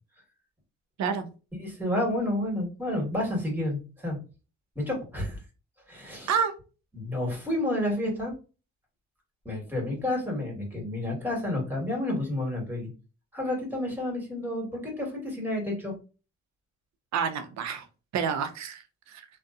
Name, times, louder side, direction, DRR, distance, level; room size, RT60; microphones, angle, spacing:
voice 1, 1.6-4.2 4.7-5.4 5.9-6.3 6.9-8.3 9.4-12.9 13.3-15.9, left 1 dB, 5° right, -2 dB, 1.4 m, -30 dB
voice 2, 17.1-17.9 18.1-19.3, right 7 dB, 65° right, 9 dB, 0.6 m, -29 dB
2.6 x 2.1 x 2.4 m, 0.33 s
cardioid pair, 90°, 30 cm